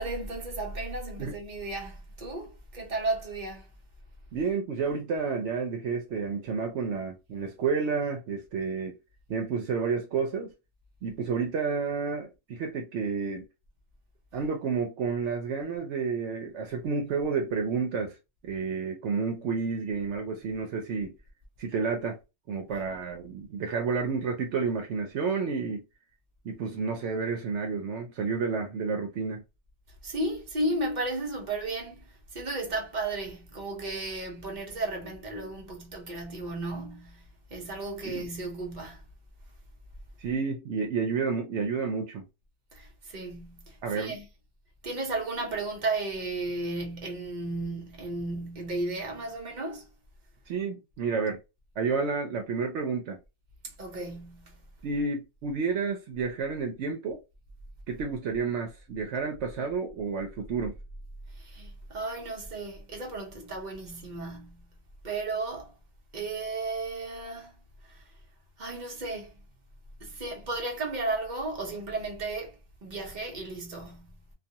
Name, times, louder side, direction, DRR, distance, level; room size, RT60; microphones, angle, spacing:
voice 1, 0.0-3.7 30.0-39.0 42.7-44.3 44.8-49.9 53.6-54.6 61.3-64.7 65.0-65.7 66.1-67.5 67.8-68.0 68.6-69.4 70.0-74.2, right 2 dB, 45° right, 0.9 m, -34 dB
voice 2, 4.3-9.0 9.3-10.5 11.0-13.4 14.3-18.2 18.4-21.2 21.6-22.2 22.5-25.8 26.4-29.4 38.0-38.2 40.2-42.2 43.8-44.2 50.5-51.4 51.8-53.2 54.8-57.2 57.9-60.7, right 5 dB, 80° right, 0.9 m, -30 dB
2.4 x 2.3 x 2.7 m
omnidirectional pair, 1.2 m